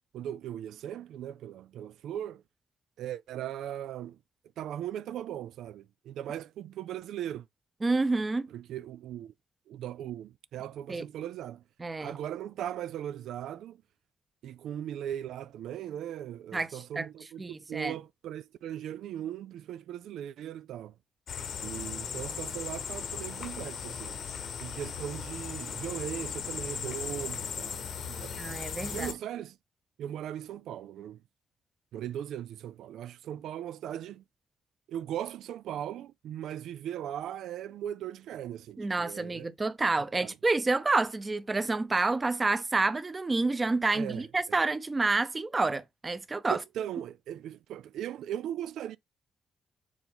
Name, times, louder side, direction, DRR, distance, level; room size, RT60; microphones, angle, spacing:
voice 1, 0.1-2.4 3.0-4.2 4.6-7.5 8.5-9.3 9.7-11.6 12.0-13.8 14.4-20.9 21.6-24.2 24.6-28.4 28.8-29.6 30.0-31.2 31.9-34.2 34.9-39.5 40.2-40.3 43.9-44.6 46.5-49.0, right 11 dB, 90° right, 0.4 m, -38 dB
voice 2, 7.8-8.5 10.9-11.0 11.8-12.2 16.5-16.7 17.0-17.1 17.4-17.9 28.4-29.1 38.8-46.6, right 3 dB, 20° right, 0.7 m, -28 dB
sound 1, 21.3-29.1, left 7 dB, 60° left, 1.0 m, -37 dB
7.2 x 3.9 x 3.5 m
cardioid pair, 135°, 0 cm